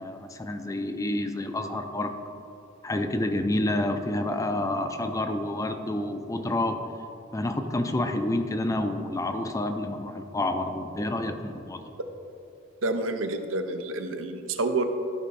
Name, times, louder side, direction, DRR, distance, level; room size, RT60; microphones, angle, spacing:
voice 1, 0.0-2.2 2.8-6.9 7.3-11.8, left 1 dB, 15° left, 7 dB, 0.4 m, -29 dB
voice 2, 12.8-14.8, right 2 dB, 80° right, 7 dB, 0.7 m, -28 dB
13.0 x 5.5 x 4.1 m, 2.7 s
head